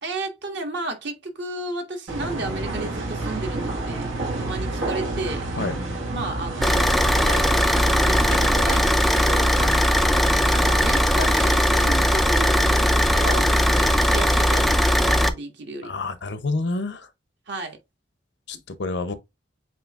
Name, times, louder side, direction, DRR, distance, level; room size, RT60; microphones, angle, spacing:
voice 1, 0.0-4.1 4.4-5.5 6.1-7.0 8.0-9.6 10.5-15.9 17.5-17.8, right 2 dB, 60° right, 1.4 m, -33 dB
sound 1, 2.1-8.5, right 2 dB, 90° right, 1.7 m, -29 dB
Car / Idling, 6.6-15.3, equal, ahead, 0.3 m, -19 dB
voice 2, 15.8-17.1 18.5-19.2, left 3 dB, 60° left, 0.7 m, -28 dB
7.7 x 2.8 x 2.4 m
head